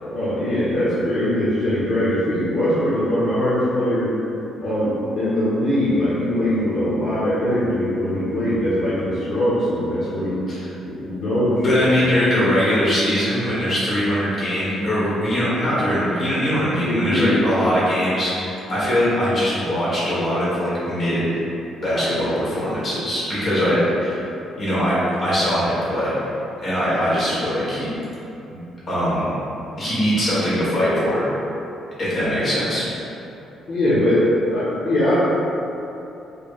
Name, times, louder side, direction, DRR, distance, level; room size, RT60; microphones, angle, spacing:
voice 1, 0.0-4.1 4.6-10.4 10.8-12.0 16.8-17.4 33.7-35.2, left 1 dB, 60° left, -11 dB, 0.9 m, -21 dB
voice 2, 11.6-21.4 21.8-24.2 24.6-26.2 26.6-27.9 28.5-28.6 28.9-29.3 29.8-31.2 32.0-32.9, equal, 35° left, -9 dB, 1.4 m, -21 dB
4.4 x 3.3 x 2.5 m, 2.9 s
cardioid pair, 150°, 0 cm